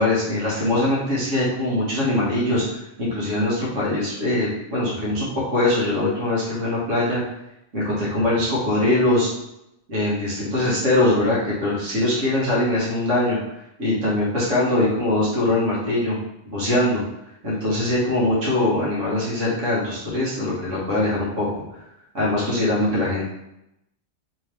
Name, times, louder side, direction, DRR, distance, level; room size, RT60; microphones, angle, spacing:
voice 1, 0.0-2.6 3.0-7.2 7.7-9.3 9.9-13.4 13.8-16.2 16.5-17.0 17.4-21.6 22.1-23.3, left 1 dB, 90° right, -6 dB, 1.7 m, -22 dB
3.5 x 3.0 x 3.3 m, 0.84 s
omnidirectional pair, 1.3 m